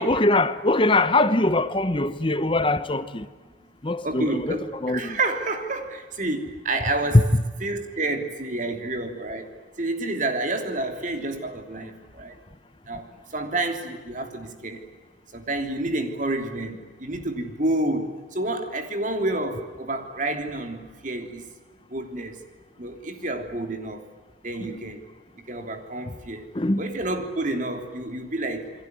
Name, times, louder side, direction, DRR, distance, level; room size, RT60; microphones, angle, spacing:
voice 1, 0.0-3.3 3.8-5.2 7.3-7.4 24.6-24.7 26.0-26.1 26.5-26.8, left 2 dB, 25° left, 1.0 m, -23 dB
voice 2, 4.0-7.2 7.6-9.5 9.8-12.4 12.9-14.8 15.3-21.5 21.9-22.4 22.8-24.0 24.4-25.1 25.4-26.5 26.8-28.7, right 2 dB, 40° right, 3.2 m, -29 dB
28.5 x 21.5 x 9.6 m
head